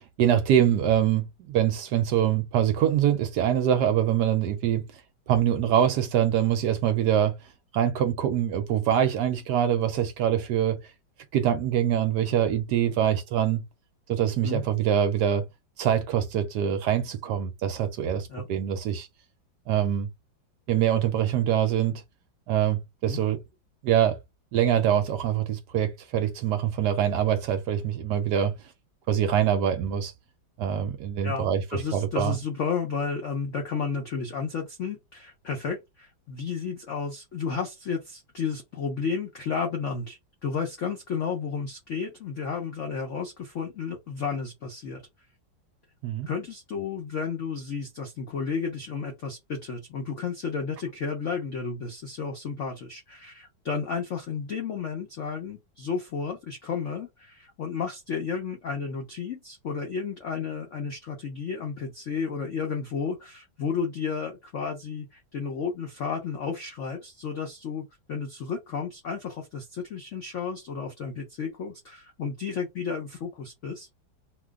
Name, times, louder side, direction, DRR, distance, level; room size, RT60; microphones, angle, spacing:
voice 1, 0.0-4.8 5.3-7.3 7.7-10.8 11.3-13.6 14.1-15.4 15.8-19.1 19.7-20.1 20.7-22.0 22.5-23.4 23.8-24.2 24.5-28.5 29.1-30.1 30.6-32.3 46.0-46.3, right 10 dB, 70° right, 1.0 m, -24 dB
voice 2, 31.2-45.0 46.3-73.9, left 5 dB, 70° left, 0.7 m, -32 dB
3.0 x 2.2 x 3.5 m
omnidirectional pair, 2.1 m